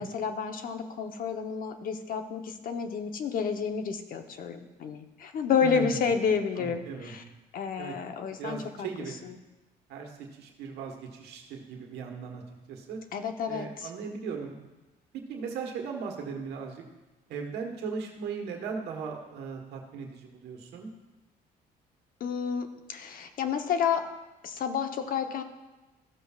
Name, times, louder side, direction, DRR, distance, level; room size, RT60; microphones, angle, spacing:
voice 1, 0.0-7.2 7.5-9.3 13.1-13.9 22.2-24.0 24.4-25.4, left 6 dB, 55° left, 6 dB, 0.9 m, -30 dB
voice 2, 5.6-6.1 6.6-7.1 7.8-7.9 8.4-9.1 9.9-12.4 12.7-13.0 13.5-14.6 15.1-16.8 17.3-20.9, right 5 dB, 80° right, 2 dB, 1.3 m, -38 dB
14.5 x 7.0 x 2.4 m, 1.1 s
cardioid pair, 110°, 17 cm